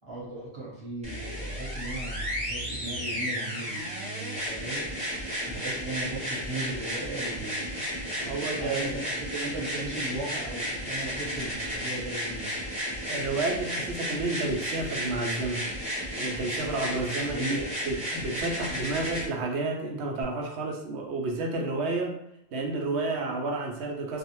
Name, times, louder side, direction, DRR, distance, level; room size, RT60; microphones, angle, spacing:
voice 1, 0.1-4.9 5.2-12.6 17.3-17.7, right 2 dB, 30° right, -7 dB, 1.0 m, -37 dB
sound 1, 1.0-19.3 20.2-20.3, equal, 5° right, 0.7 m, -33 dB
voice 2, 8.2-9.0 13.1-15.7 16.2-22.1 22.5-24.2, right 3 dB, 85° right, 1 dB, 0.9 m, -31 dB
2.4 x 2.0 x 2.9 m, 0.84 s
omnidirectional pair, 1.1 m